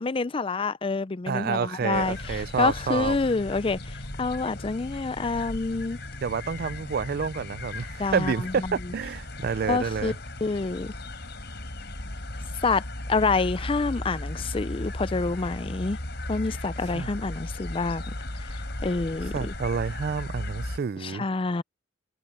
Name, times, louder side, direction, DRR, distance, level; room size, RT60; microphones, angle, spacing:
voice 1, 0.0-6.0 8.0-8.7 9.6-10.1 10.4-10.9 12.6-12.8 13.1-16.0 16.3-18.0 18.8-19.5 21.0-21.6, left 3 dB, 30° left, 0.5 m, -27 dB
voice 2, 1.3-3.2 6.2-10.1 16.9-17.1 19.3-21.3, right 6 dB, 55° right, 0.4 m, -29 dB
sound 1, 1.9-20.8, left 1 dB, 60° left, 4.7 m, -36 dB
head